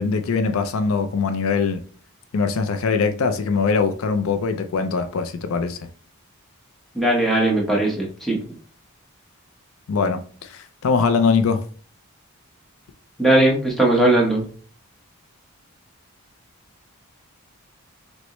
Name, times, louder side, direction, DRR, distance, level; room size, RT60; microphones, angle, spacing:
voice 1, 0.0-1.8 2.3-5.8 9.9-11.6, left 5 dB, 70° left, 0.4 m, -22 dB
voice 2, 6.9-8.4 13.2-14.4, right 1 dB, ahead, 1.0 m, -18 dB
6.1 x 2.1 x 3.0 m
head